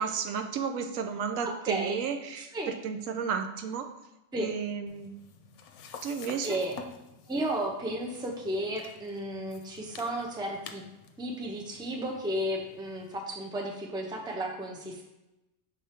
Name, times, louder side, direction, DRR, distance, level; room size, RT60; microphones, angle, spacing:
voice 1, 0.0-3.9 4.4-5.1 6.0-6.6, right 6 dB, 85° right, 7 dB, 1.0 m, -33 dB
voice 2, 1.4-2.0 2.4-2.7 4.3-4.5 6.4-6.7 7.3-10.8 11.2-15.0, right 1 dB, 5° right, 1 dB, 0.5 m, -33 dB
sound 1, 4.9-13.2, left 6 dB, 70° left, 0.9 m, -50 dB
6.4 x 3.4 x 4.3 m, 0.97 s
omnidirectional pair, 1.4 m